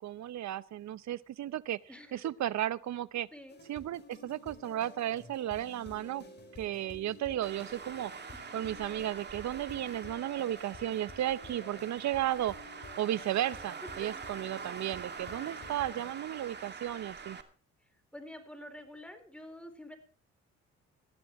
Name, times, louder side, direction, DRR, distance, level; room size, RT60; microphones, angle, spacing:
voice 1, 0.0-1.8 2.1-3.3 3.7-6.2 6.6-8.1 8.5-12.6 13.0-17.4, right 12 dB, 65° right, 0.8 m, -34 dB
voice 2, 1.9-2.3 3.3-3.6 8.3-8.6 18.1-20.0, left 1 dB, 5° left, 4.4 m, -48 dB
sound 1, 3.5-16.1, left 2 dB, 35° left, 5.5 m, -51 dB
Traffic noise roadway noise, 7.4-17.4, right 5 dB, 35° right, 2.3 m, -45 dB
19.5 x 14.0 x 3.1 m
cardioid pair, 90°, 30 cm